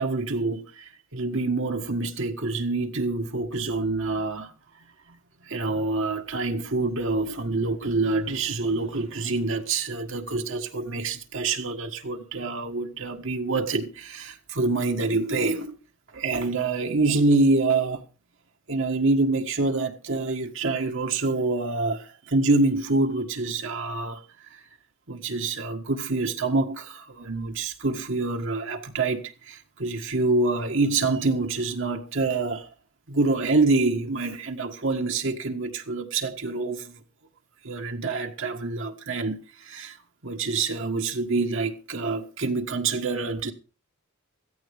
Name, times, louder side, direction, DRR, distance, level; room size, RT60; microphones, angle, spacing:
voice 1, 0.0-4.5 5.4-15.8 16.1-18.0 18.7-24.2 24.5-24.6 25.1-32.7 33.1-37.0 37.6-40.0 40.2-43.5, right 3 dB, 65° right, 1.6 m, -26 dB
16.5 x 14.0 x 3.6 m
head